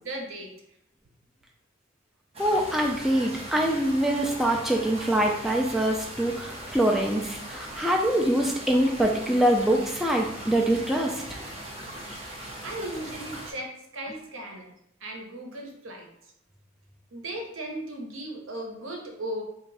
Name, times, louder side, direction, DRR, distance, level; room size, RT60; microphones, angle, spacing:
voice 1, 0.0-0.5 12.6-14.7 15.0-16.1 17.1-19.4, right 1 dB, 80° right, 1 dB, 0.8 m, -36 dB
sound 1, 2.3-13.5, right 1 dB, 30° right, 0.7 m, -40 dB
voice 2, 2.4-11.4, right 1 dB, ahead, -1 dB, 0.3 m, -24 dB
2.9 x 2.6 x 4.0 m, 0.76 s
head